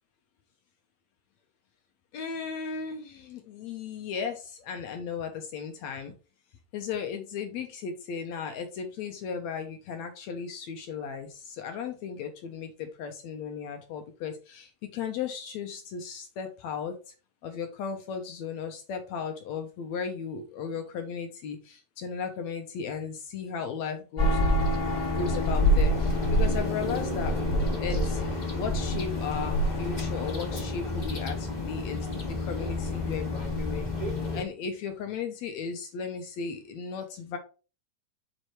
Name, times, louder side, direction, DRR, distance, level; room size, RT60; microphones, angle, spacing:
voice 1, 2.1-6.1 6.7-17.0 17.4-24.5 25.2-27.4 27.8-28.2 28.5-32.1 32.4-33.9 34.3-37.4, left 6 dB, 70° left, 5 dB, 1.8 m, -36 dB
sound 1, 24.2-34.4, left 1 dB, 20° left, 1.3 m, -27 dB
6.5 x 4.7 x 4.6 m, 0.34 s
omnidirectional pair, 3.9 m